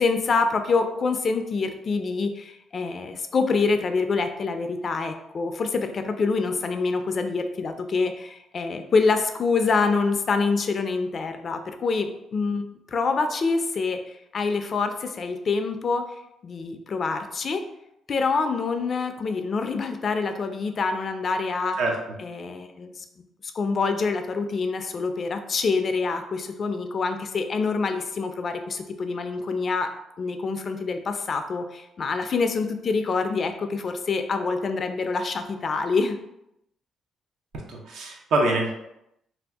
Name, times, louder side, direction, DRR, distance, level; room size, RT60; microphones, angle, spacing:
voice 1, 0.0-16.0 16.4-17.6 18.1-21.8 22.2-23.0 23.4-29.9 30.2-36.2, left 4 dB, 45° left, 7 dB, 0.3 m, -26 dB
voice 2, 37.7-38.7, right 2 dB, 75° right, 0 dB, 0.7 m, -24 dB
2.6 x 2.3 x 3.4 m, 0.84 s
cardioid pair, 90°, 0 cm